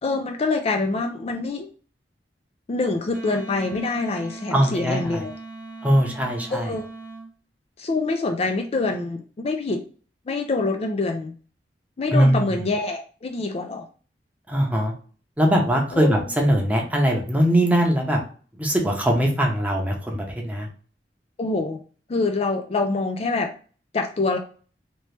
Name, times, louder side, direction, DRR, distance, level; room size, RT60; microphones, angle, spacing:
voice 1, 0.0-1.7 2.7-5.3 6.5-6.9 7.8-9.8 10.3-11.3 12.0-13.9 15.9-16.2 21.4-21.8 22.1-23.5 23.9-24.4, left 3 dB, 35° left, 4 dB, 0.4 m, -25 dB
Wind instrument woodwind instrument, 3.1-7.3, right 3 dB, 60° right, 1.0 m, -39 dB
voice 2, 4.5-5.2 5.8-6.7 12.1-12.5 14.5-14.9 15.4-18.2 18.5-20.7, equal, 10° right, 0 dB, 0.7 m, -21 dB
2.9 x 2.9 x 3.3 m, 0.40 s
head